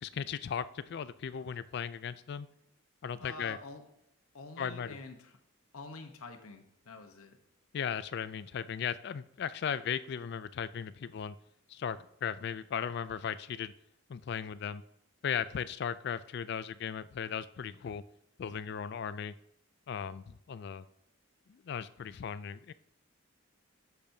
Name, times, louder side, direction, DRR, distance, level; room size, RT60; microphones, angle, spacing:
voice 1, 0.0-2.5 3.0-3.6 4.6-5.0 7.7-11.4 11.7-13.7 14.1-14.8 15.2-18.0 18.4-19.3 19.9-20.9 21.5-22.7, left 7 dB, 50° left, 15 dB, 0.3 m, -37 dB
voice 2, 3.2-3.8 4.3-5.3 5.7-7.4, left 3 dB, 90° left, 5 dB, 1.0 m, -47 dB
10.0 x 6.9 x 2.7 m, 0.74 s
head